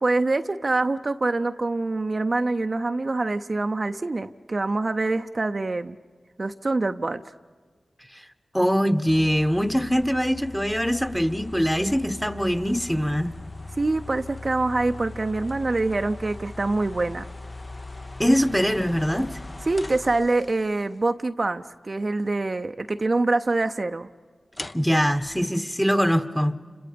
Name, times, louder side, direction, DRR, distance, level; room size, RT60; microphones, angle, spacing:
voice 1, 0.0-6.0 6.4-7.2 13.8-17.3 19.7-24.1, right 2 dB, 45° right, 0.6 m, -25 dB
voice 2, 8.5-13.3 18.2-19.3 24.7-26.6, equal, 5° left, 1.2 m, -22 dB
sound 1, 9.1-20.8 24.5-25.5, left 2 dB, 35° left, 0.8 m, -40 dB
29.5 x 26.5 x 5.2 m
cardioid pair, 40°, 0 cm